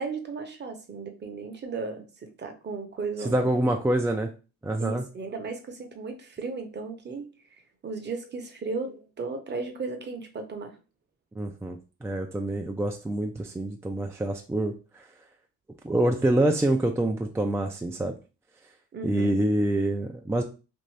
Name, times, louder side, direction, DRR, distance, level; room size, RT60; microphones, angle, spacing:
voice 1, 0.0-3.5 4.8-10.7 18.9-19.3, right 4 dB, 35° right, 5 dB, 0.8 m, -35 dB
voice 2, 3.2-4.3 4.6-5.0 11.4-15.0 15.8-18.1 19.0-20.4, right 1 dB, 10° right, 2 dB, 0.3 m, -26 dB
2.6 x 2.6 x 3.2 m, 0.32 s
cardioid pair, 90°, 30 cm